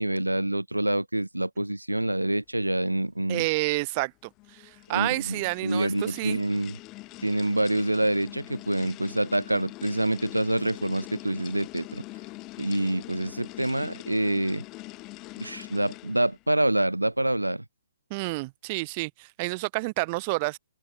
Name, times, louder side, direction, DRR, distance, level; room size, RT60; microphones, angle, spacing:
voice 1, 0.0-3.5 4.9-6.8 7.2-12.0 12.6-14.6 15.4-17.6, right 1 dB, 85° right, 1.9 m, -26 dB
voice 2, 3.3-6.4 18.1-20.6, right 26 dB, 30° right, 2.8 m, -29 dB
sound 1, 4.3-16.4, left 21 dB, 25° left, 2.8 m, -43 dB
open air
figure-of-eight pair, 130°, 0 cm